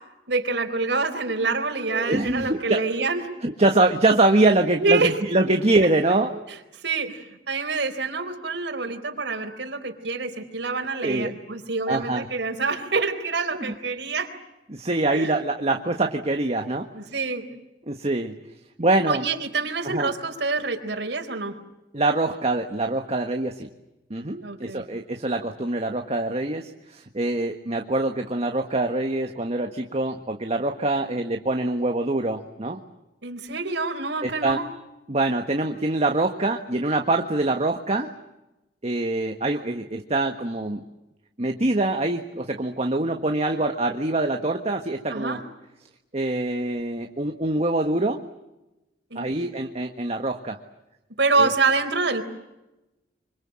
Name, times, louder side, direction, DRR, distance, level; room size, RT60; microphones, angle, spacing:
voice 1, 0.3-3.2 4.8-5.1 6.8-14.3 15.1-15.3 16.9-17.4 19.1-21.5 24.4-24.8 33.2-34.6 45.1-45.4 49.1-49.3 51.2-52.2, right 3 dB, 75° right, 4 dB, 4.2 m, -26 dB
voice 2, 1.9-2.8 3.4-6.4 11.0-11.3 11.9-12.3 13.5-13.7 14.7-16.9 17.9-18.3 18.8-19.2 19.8-20.1 21.9-23.7 24.1-32.8 34.2-34.6 35.1-38.1 38.8-40.8 41.4-45.4 46.1-48.2 49.1-50.6 51.4-51.5, right 2 dB, 35° right, 4 dB, 1.5 m, -24 dB
26.0 x 25.5 x 7.7 m, 0.96 s
head